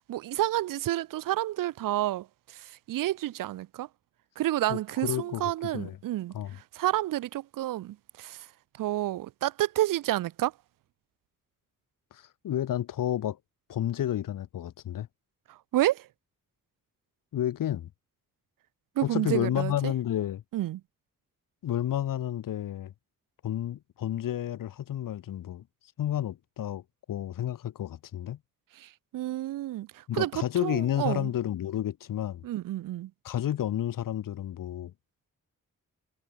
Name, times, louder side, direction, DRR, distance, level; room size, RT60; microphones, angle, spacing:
voice 1, 0.1-3.9 4.4-8.5 8.8-10.5 15.5-16.1 19.0-19.9 20.5-20.8 28.8-31.3 32.4-33.1, right 14 dB, 80° right, 0.5 m, -30 dB
voice 2, 4.7-6.0 6.3-6.6 12.1-13.4 13.7-15.1 17.3-17.9 19.0-20.4 21.6-22.9 23.4-25.6 26.0-26.8 27.1-28.4 30.1-32.4 33.2-34.9, left 11 dB, 85° left, 1.0 m, -31 dB
wide cardioid pair, 115°, 32 cm